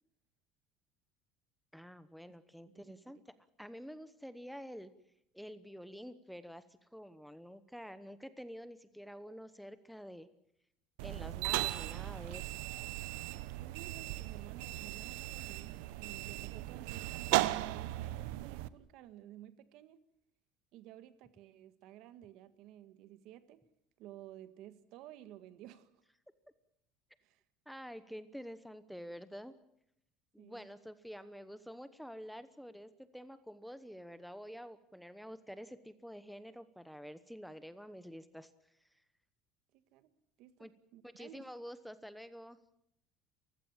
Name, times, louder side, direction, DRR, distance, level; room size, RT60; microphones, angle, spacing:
voice 1, 1.7-4.9 5.3-10.3 11.0-12.5 27.7-29.5 30.3-38.5 40.6-40.7 41.0-42.6, equal, ahead, 1.0 m, -48 dB
voice 2, 2.6-3.1 13.6-20.0 20.7-23.6 24.0-25.9 27.2-27.4 30.4-30.7 39.7-40.1 40.4-41.4, right 13 dB, 60° right, 1.7 m, -54 dB
sound 1, 11.0-18.7, right 17 dB, 85° right, 0.9 m, -37 dB
30.0 x 16.0 x 7.4 m
cardioid pair, 145°, 0 cm